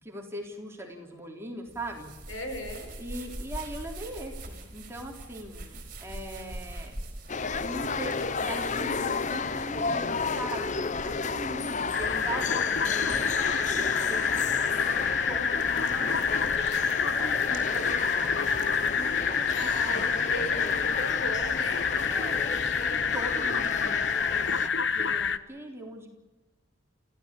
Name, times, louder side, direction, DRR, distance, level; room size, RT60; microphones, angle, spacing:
voice 1, 0.0-2.1 3.0-6.9 7.6-14.6 15.3-20.8 22.1-24.0 24.3-26.1, right 1 dB, 10° right, 1 dB, 3.7 m, -41 dB
sound 1, 1.7-18.9, right 1 dB, 40° right, 4.5 m, -45 dB
voice 2, 2.3-2.9 19.5-21.9, left 1 dB, 85° left, 5 dB, 6.1 m, -37 dB
sound 2, 7.3-24.7, left 4 dB, 35° left, 0.7 m, -32 dB
sound 3, 11.9-25.4, left 6 dB, 60° left, 1.0 m, -28 dB
29.0 x 15.5 x 8.5 m, 1.2 s
head